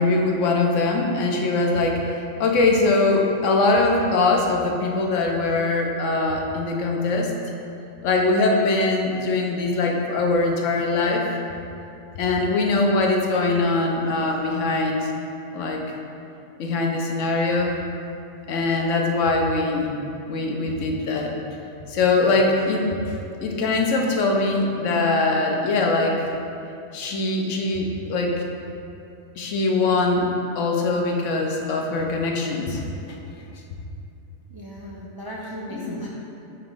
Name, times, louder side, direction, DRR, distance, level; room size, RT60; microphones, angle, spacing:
voice 1, 0.0-7.3 8.0-11.3 12.1-15.1 15.5-15.8 16.6-17.7 18.5-20.0 20.3-21.3 21.9-26.2 26.9-28.4 29.4-32.8 35.7-35.9, left 3 dB, 90° left, 1 dB, 1.1 m, -22 dB
voice 2, 34.5-36.1, equal, 40° right, -4 dB, 0.3 m, -36 dB
5.8 x 3.0 x 5.3 m, 2.7 s
omnidirectional pair, 1.2 m